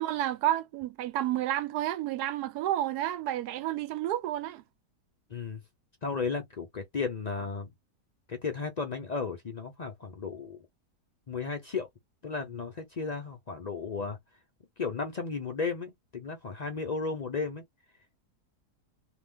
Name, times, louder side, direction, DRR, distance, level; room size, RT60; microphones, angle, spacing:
voice 1, 0.0-4.6, right 13 dB, 85° right, 1.1 m, -30 dB
voice 2, 5.3-5.6 6.0-7.7 8.3-10.6 11.3-11.9 12.2-14.2 14.8-17.6, left 4 dB, 65° left, 0.4 m, -34 dB
2.8 x 2.4 x 3.6 m
omnidirectional pair, 1.6 m